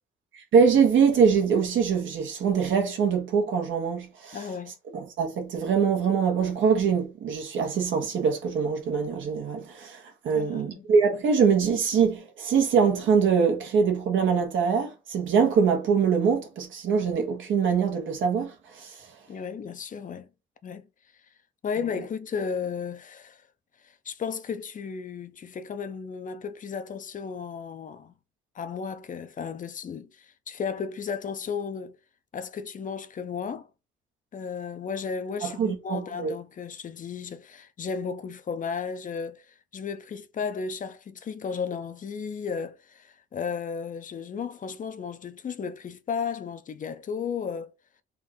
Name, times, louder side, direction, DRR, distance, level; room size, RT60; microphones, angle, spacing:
voice 1, 0.3-4.4 4.9-19.1 35.4-36.3, right 6 dB, 75° right, 1.3 m, -23 dB
voice 2, 4.3-4.7 10.3-10.9 19.3-20.3 20.6-20.9 21.6-23.4 23.8-28.1 28.5-32.0 32.3-33.7 34.3-47.7, left 6 dB, 40° left, 0.6 m, -34 dB
3.7 x 2.5 x 4.3 m
cardioid pair, 90°, 20 cm